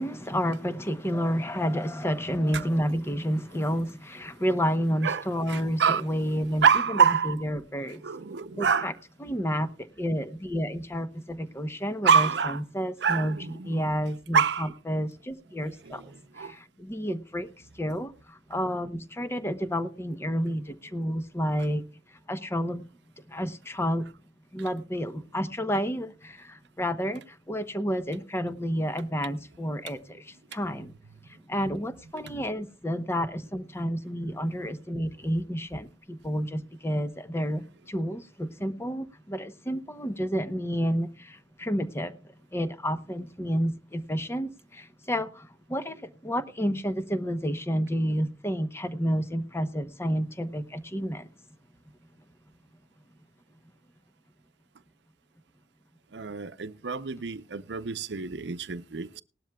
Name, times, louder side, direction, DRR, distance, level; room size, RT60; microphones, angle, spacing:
voice 1, 0.0-8.0 8.5-8.9 9.2-9.7 10.0-17.5 17.7-21.8 22.3-22.9 23.3-24.1 24.5-30.9 31.3-51.3, equal, 15° left, 0.9 m, -30 dB
voice 2, 5.0-6.0 6.6-7.3 8.0-8.9 12.0-12.6 13.0-13.9 14.3-14.7 15.9-16.0 16.4-16.5 31.6-31.7 56.1-59.2, right 6 dB, 80° right, 0.7 m, -26 dB
19.0 x 12.5 x 2.3 m
head